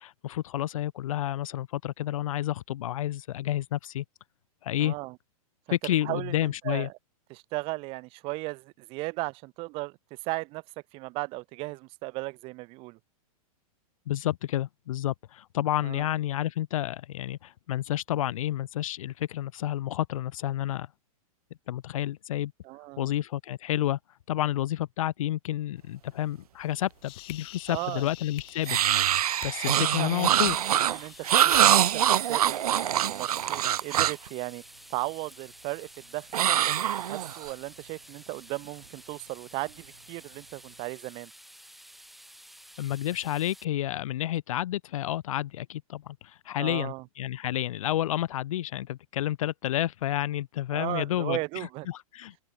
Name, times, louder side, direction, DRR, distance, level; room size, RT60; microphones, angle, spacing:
voice 1, 0.0-4.0 4.6-4.9 5.7-6.9 14.1-20.9 21.7-22.5 23.0-24.0 24.3-28.8 29.4-30.6 42.8-52.4, left 13 dB, 60° left, 0.8 m, -30 dB
voice 2, 4.8-5.2 5.8-6.9 7.3-10.6 10.9-13.0 15.8-16.1 22.6-23.1 27.7-28.1 29.7-30.1 30.9-34.6 34.9-41.3 46.6-47.0 50.7-51.9, right 24 dB, 30° right, 4.0 m, -36 dB
sound 1, 26.6-31.6, left 24 dB, 30° left, 1.8 m, -47 dB
sound 2, 28.6-34.3 36.3-37.5, right 11 dB, 80° right, 1.4 m, -24 dB
sound 3, 30.3-43.6, equal, ahead, 6.1 m, -51 dB
open air
supercardioid pair, 165°, 19 cm